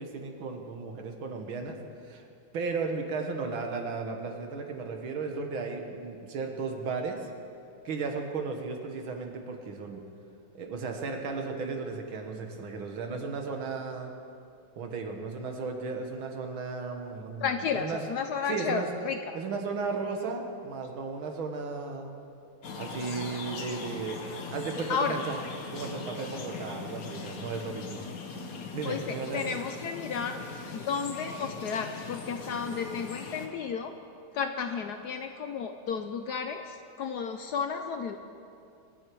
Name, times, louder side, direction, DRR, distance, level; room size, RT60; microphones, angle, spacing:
voice 1, 0.0-1.8 2.0-2.2 2.5-7.3 7.9-10.0 10.5-14.1 14.8-18.0 18.5-18.9 19.3-22.2 22.8-24.2 24.5-25.4 25.7-28.1 28.7-29.7, right 4 dB, 75° right, 3 dB, 2.2 m, -35 dB
voice 2, 17.4-19.2 24.9-25.2 28.8-30.4 30.7-33.9 34.3-38.2, left 6 dB, 70° left, 7 dB, 1.0 m, -32 dB
sound 1, 22.6-33.5, left 4 dB, 50° left, 1.4 m, -40 dB
23.5 x 10.0 x 4.7 m, 2.6 s
omnidirectional pair, 2.2 m